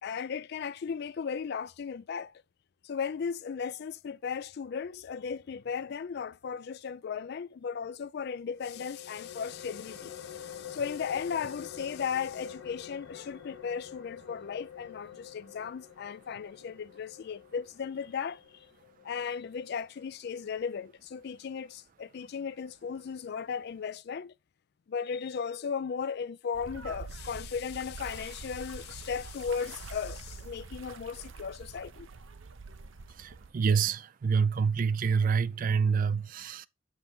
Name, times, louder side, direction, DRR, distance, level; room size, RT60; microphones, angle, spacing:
voice 1, 0.0-2.3 2.8-18.4 19.0-24.3 24.9-32.1, left 6 dB, 50° left, 0.3 m, -36 dB
sound 1, 8.5-19.9, left 9 dB, 70° left, 1.0 m, -47 dB
sound 2, 26.5-33.5, right 4 dB, 70° right, 0.7 m, -45 dB
voice 2, 33.1-36.7, right 6 dB, 40° right, 0.3 m, -27 dB
7.1 x 5.5 x 3.9 m
head